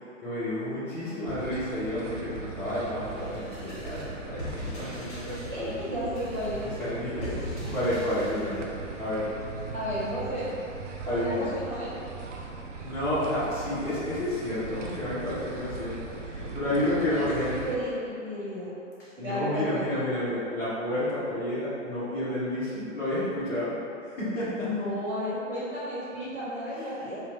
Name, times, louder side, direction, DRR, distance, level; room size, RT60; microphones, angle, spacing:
voice 1, 0.2-5.8 6.8-7.4 7.7-8.6 9.0-9.3 11.1-11.5 12.8-17.7 19.2-23.8 24.1-24.7 27.1-27.2, left 1 dB, 5° left, -10 dB, 0.3 m, -30 dB
sound 1, 1.3-17.8, right 4 dB, 70° right, 0.6 m, -39 dB
sound 2, 3.0-8.6, left 1 dB, 35° left, 1.5 m, -41 dB
voice 2, 5.5-6.6 9.7-10.4 11.0-11.9 16.6-17.9 18.2-18.7 19.0-20.0 24.6-27.2, equal, 30° right, -10 dB, 1.4 m, -33 dB
4.3 x 2.2 x 4.2 m, 2.7 s
figure-of-eight pair, 110°, 38 cm